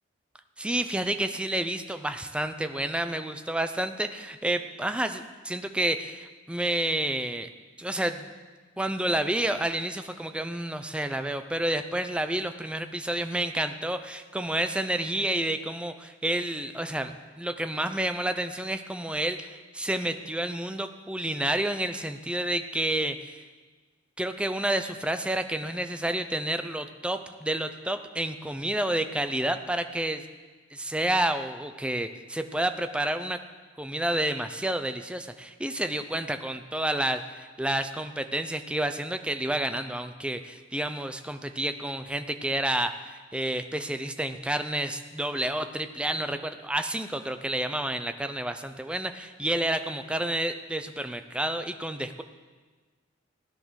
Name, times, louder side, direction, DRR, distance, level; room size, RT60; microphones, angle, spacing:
voice 1, 0.6-7.5 7.8-8.3 8.8-23.4 24.2-30.2 30.7-33.4 33.8-52.2, right 1 dB, 5° right, 8 dB, 0.6 m, -30 dB
16.0 x 10.5 x 6.4 m, 1.4 s
head